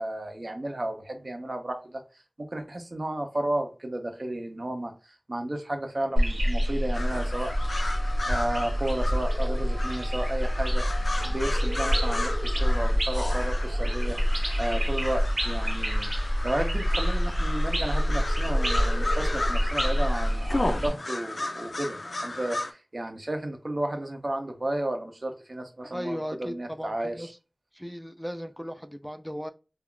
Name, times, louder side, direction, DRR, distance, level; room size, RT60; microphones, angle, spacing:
voice 1, 0.0-2.0 2.4-7.5 8.3-10.8 11.2-14.2 14.6-16.1 16.4-22.0 22.2-27.3, right 1 dB, 60° right, 0.6 m, -33 dB
sound 1, 6.2-20.9, equal, 85° right, 1.0 m, -26 dB
sound 2, 6.9-22.7, left 2 dB, 85° left, 0.4 m, -35 dB
voice 2, 25.9-27.4 27.7-29.5, equal, ahead, 0.3 m, -36 dB
2.3 x 2.3 x 3.6 m
wide cardioid pair, 55°, 0 cm